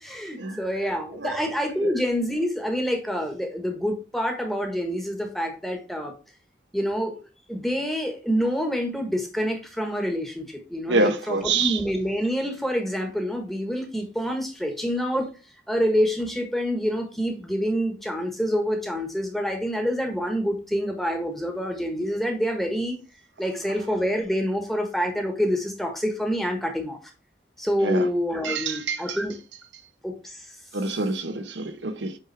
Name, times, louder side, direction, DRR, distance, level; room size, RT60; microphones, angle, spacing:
voice 1, 0.0-6.2 6.7-7.2 7.5-15.3 15.7-23.0 23.4-27.0 27.6-29.4 30.0-30.5, equal, ahead, 1.3 m, -27 dB
voice 2, 10.9-11.8 27.8-28.1 28.4-29.2 30.7-32.2, right 3 dB, 85° right, 0.9 m, -26 dB
7.9 x 3.6 x 3.3 m
head